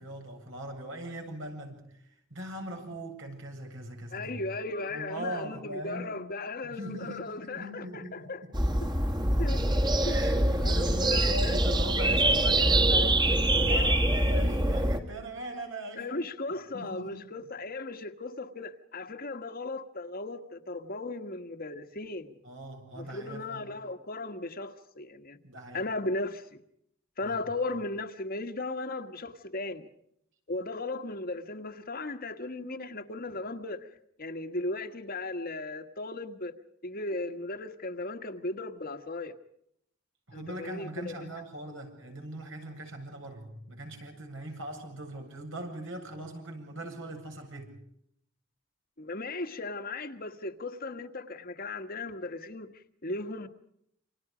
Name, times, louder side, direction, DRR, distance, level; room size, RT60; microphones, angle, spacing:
voice 1, 0.0-2.0 2.3-4.4 4.9-6.1 6.6-8.5 10.0-16.1 16.7-17.2 22.4-23.7 25.4-25.9 27.2-27.4 40.3-47.8, right 1 dB, 75° right, 7.8 m, -40 dB
voice 2, 4.1-8.4 9.4-9.6 10.0-10.2 10.6-11.6 13.7-14.0 15.9-22.3 23.0-25.4 25.7-26.5 27.2-29.9 30.5-33.9 34.2-36.5 36.8-39.3 40.3-41.3 49.0-53.5, left 2 dB, 50° left, 1.6 m, -36 dB
sound 1, 8.5-15.0, right 1 dB, 20° right, 2.2 m, -24 dB
29.0 x 27.0 x 5.1 m
head